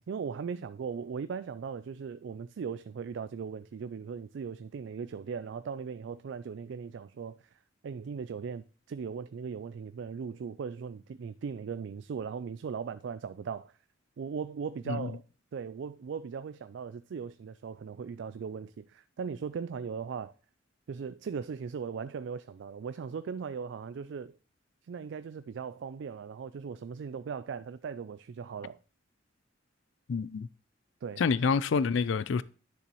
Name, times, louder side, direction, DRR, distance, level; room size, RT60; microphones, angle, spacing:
voice 1, 0.0-13.7 14.2-15.2 15.5-20.3 20.9-24.4 24.8-28.8 31.0-31.2, right 6 dB, 70° right, 0.3 m, -38 dB
voice 2, 30.1-30.5 31.2-32.4, left 5 dB, 70° left, 0.4 m, -27 dB
10.0 x 6.8 x 3.0 m
head